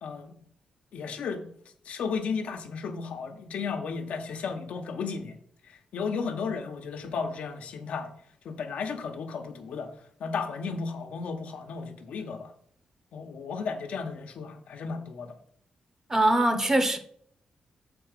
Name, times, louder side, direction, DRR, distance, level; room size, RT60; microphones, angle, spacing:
voice 1, 0.0-0.4 0.9-1.4 1.8-5.3 5.9-8.1 8.4-9.9 10.2-12.5 13.1-15.4, left 5 dB, 85° left, 1.1 m, -34 dB
voice 2, 16.1-17.0, right 1 dB, 20° right, 1.0 m, -22 dB
7.1 x 4.3 x 6.6 m
wide cardioid pair, 125°, 2 cm